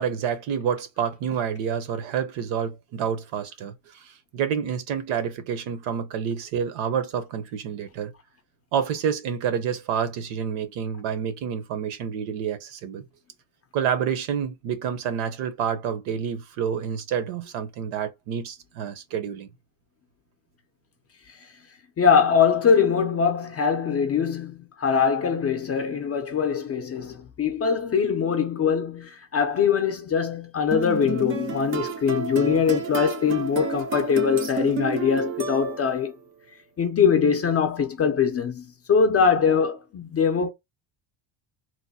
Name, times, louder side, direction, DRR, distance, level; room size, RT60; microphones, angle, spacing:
voice 1, 0.0-8.1 8.7-13.0 13.7-19.5, right 8 dB, 80° right, 0.9 m, -28 dB
voice 2, 22.0-36.1 36.8-40.5, left 6 dB, 30° left, 0.5 m, -22 dB
sound 1, 30.7-36.1, right 5 dB, 30° right, 0.4 m, -31 dB
3.0 x 2.1 x 4.0 m
cardioid pair, 150°, 49 cm